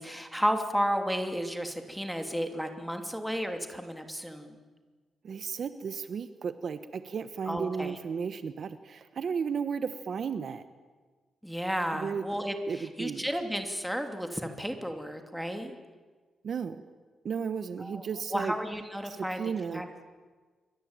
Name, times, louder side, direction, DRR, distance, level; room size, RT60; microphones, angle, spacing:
voice 1, 0.0-4.6 7.5-8.0 11.4-15.8 17.8-18.0 18.3-19.4 19.7-19.8, equal, ahead, 5 dB, 2.9 m, -32 dB
voice 2, 5.2-10.6 11.9-12.3 12.7-13.3 16.4-16.8 17.2-18.5 19.0-19.9, right 6 dB, 50° right, 11 dB, 1.2 m, -34 dB
27.5 x 24.0 x 9.0 m, 1.4 s
wide cardioid pair, 135°, 0 cm